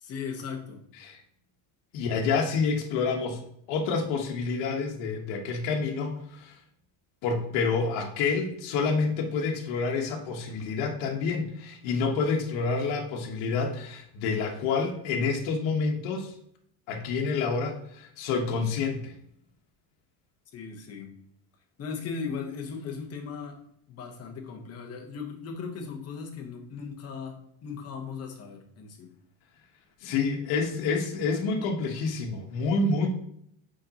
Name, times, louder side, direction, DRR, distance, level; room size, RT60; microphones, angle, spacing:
voice 1, 0.0-0.8 20.5-21.1 21.8-23.6 23.9-29.1, left 5 dB, 30° left, 2 dB, 1.0 m, -37 dB
voice 2, 1.9-3.4 3.7-6.5 7.2-16.3 16.9-19.1 30.0-33.1, left 4 dB, 65° left, 0 dB, 1.2 m, -28 dB
6.5 x 5.1 x 2.9 m, 0.70 s
cardioid pair, 155°, 50 cm